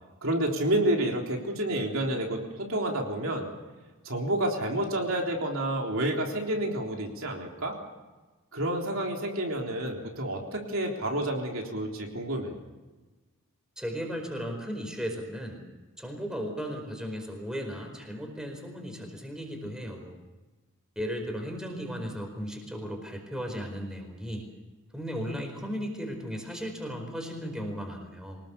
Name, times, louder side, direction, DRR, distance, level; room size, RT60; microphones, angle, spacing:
voice 1, 0.2-3.5 4.0-7.7 8.5-12.6, right 1 dB, 65° right, 1 dB, 3.7 m, -29 dB
voice 2, 13.8-15.6 16.0-20.2 20.9-24.5 24.9-28.4, equal, 5° right, 3 dB, 4.7 m, -36 dB
25.0 x 19.5 x 7.0 m, 1.2 s
head